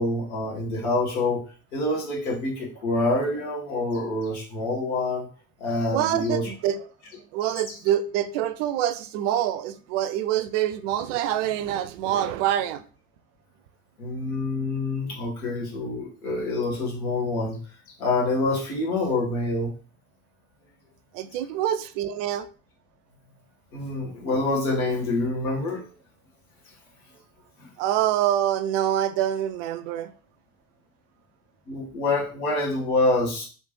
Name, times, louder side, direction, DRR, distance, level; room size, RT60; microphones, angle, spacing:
voice 1, 0.0-1.4 1.7-5.3 5.6-6.5 7.4-7.5 14.0-17.6 18.0-19.7 23.7-25.8 27.6-27.7 31.7-33.4, left 2 dB, 75° left, 1.5 m, -26 dB
voice 2, 5.9-6.8 7.3-12.8 21.1-22.5 27.8-30.1, right 11 dB, 60° right, 0.5 m, -26 dB
3.2 x 2.8 x 3.0 m
figure-of-eight pair, 55°, 43 cm